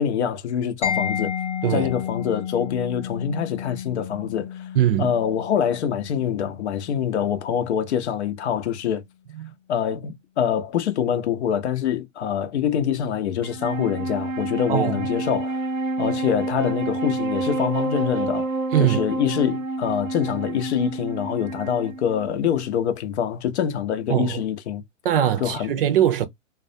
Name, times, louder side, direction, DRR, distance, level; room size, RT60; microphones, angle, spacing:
voice 1, 0.0-1.3 1.7-4.6 5.0-9.0 9.7-15.6 16.0-18.5 18.8-24.8 25.4-25.7, left 8 dB, 60° left, 0.7 m, -25 dB
Mallet percussion, 0.8-8.4, left 8 dB, 15° left, 0.8 m, -32 dB
voice 2, 4.7-5.1 9.3-9.5 14.7-15.1 18.7-19.0 24.1-24.4 25.0-26.3, right 10 dB, 45° right, 0.6 m, -21 dB
Wind instrument woodwind instrument, 13.4-22.9, right 2 dB, 90° right, 0.6 m, -29 dB
2.4 x 2.1 x 2.6 m
hypercardioid pair, 120°, 39 cm